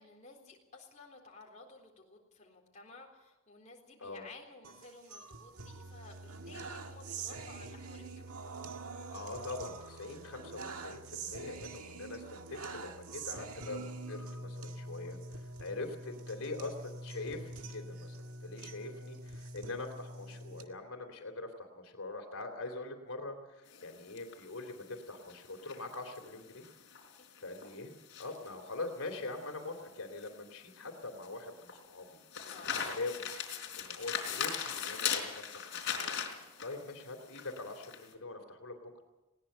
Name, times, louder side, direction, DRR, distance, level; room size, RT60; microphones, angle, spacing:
voice 1, 0.0-8.3 27.2-27.3 28.1-28.2 32.5-32.8, left 3 dB, 35° left, -1 dB, 3.8 m, -54 dB
sound 1, 4.6-20.6, right 3 dB, 85° right, 1.8 m, -45 dB
voice 2, 9.1-26.7 27.4-27.9 28.2-32.2 32.6-33.3 33.8-36.2 36.6-38.8, left 2 dB, 75° left, 5 dB, 3.3 m, -43 dB
sound 2, 23.7-38.1, left 7 dB, 55° left, 4.0 m, -40 dB
20.5 x 18.5 x 6.9 m, 1.0 s
head